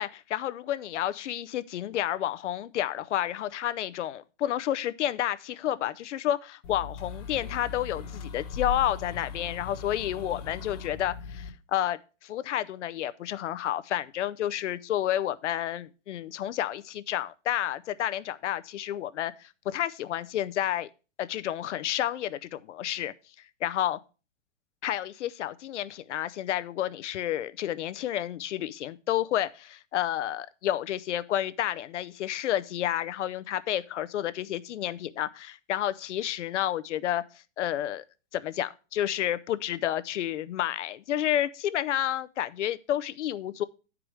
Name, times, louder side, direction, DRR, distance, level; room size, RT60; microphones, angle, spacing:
voice 1, 0.0-20.9 21.2-23.1 23.6-24.0 24.8-37.2 37.6-38.0 38.3-43.6, left 12 dB, 70° left, 0.6 m, -30 dB
sound 1, 6.6-11.5, left 6 dB, 35° left, 1.2 m, -38 dB
10.0 x 4.8 x 4.8 m
hypercardioid pair, 175°, 36 cm